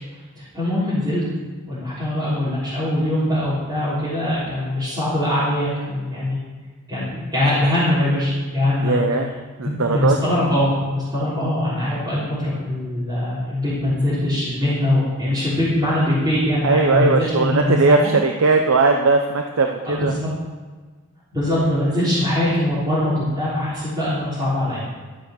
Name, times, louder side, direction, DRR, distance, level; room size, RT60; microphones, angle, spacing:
voice 1, 0.4-1.2 1.7-6.4 6.9-9.0 9.6-18.0 19.9-20.2 21.3-24.8, left 1 dB, 20° right, -14 dB, 3.6 m, -22 dB
voice 2, 8.8-9.3 9.6-10.3 16.6-20.1, right 3 dB, 65° right, 4 dB, 0.7 m, -18 dB
13.0 x 6.2 x 6.5 m, 1.4 s
head